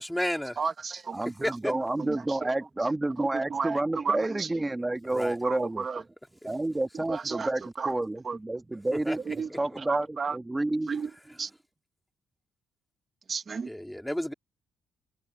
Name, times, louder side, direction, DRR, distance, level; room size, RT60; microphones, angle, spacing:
voice 1, 0.0-0.6 1.4-1.7 5.0-5.4 8.9-9.6 13.7-14.3, equal, 5° left, 2.6 m, -32 dB
voice 2, 0.6-1.2 3.2-3.8 4.0-4.5 5.4-6.0 6.9-7.5 7.8-7.9 8.2-8.4 9.3-9.5 9.9-10.4 10.9-11.1 11.4-11.5 13.3-13.7, right 5 dB, 35° right, 1.3 m, -32 dB
voice 3, 1.1-5.9 6.4-9.2 9.5-11.0, right 2 dB, 15° right, 2.0 m, -30 dB
cardioid pair, 125°, 0 cm